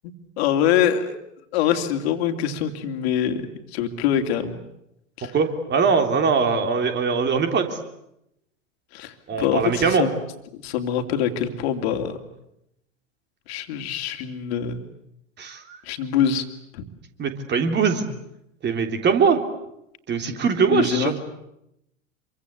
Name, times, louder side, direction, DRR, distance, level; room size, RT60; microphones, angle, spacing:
voice 1, 0.0-1.1 1.5-4.6 5.2-5.3 8.9-10.1 10.6-12.2 13.5-14.9 15.8-16.4 16.7-16.9 20.3-20.4 20.7-21.2, left 9 dB, 55° left, 6 dB, 3.0 m, -24 dB
voice 2, 5.3-7.7 9.3-10.1 15.4-15.8 17.2-18.1 18.6-19.4 20.1-21.1, right 5 dB, 30° right, 6 dB, 3.4 m, -21 dB
27.0 x 24.5 x 8.3 m, 0.81 s
figure-of-eight pair, 85°, 38 cm